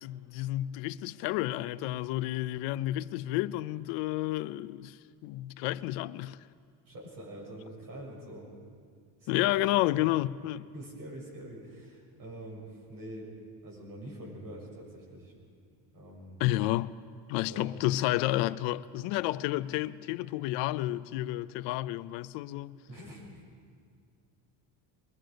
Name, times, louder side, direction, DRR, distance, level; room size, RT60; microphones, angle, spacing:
voice 1, 0.0-6.4 9.3-10.7 16.4-16.9 17.3-22.8, left 16 dB, 80° left, 0.7 m, -31 dB
voice 2, 6.9-8.5 9.2-10.0 10.7-13.3 13.6-15.3 15.9-16.4 17.5-17.7 22.9-23.3, right 1 dB, 50° right, 7.0 m, -45 dB
24.0 x 21.0 x 5.2 m
cardioid pair, 155°, 42 cm